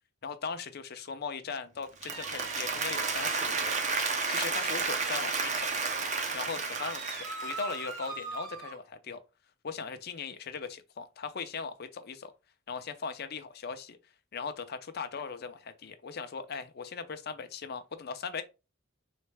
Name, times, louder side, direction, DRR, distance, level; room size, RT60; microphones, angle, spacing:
voice 1, 0.2-3.8 4.3-5.9 6.3-9.2 9.6-12.3 12.7-14.0 14.3-18.4, left 5 dB, 50° left, 0.5 m, -39 dB
Applause, 1.8-8.1, right 4 dB, 35° right, 0.7 m, -32 dB
sound 1, 2.0-3.8 6.7-8.8, right 4 dB, 75° right, 1.1 m, -42 dB
3.9 x 3.2 x 3.3 m
head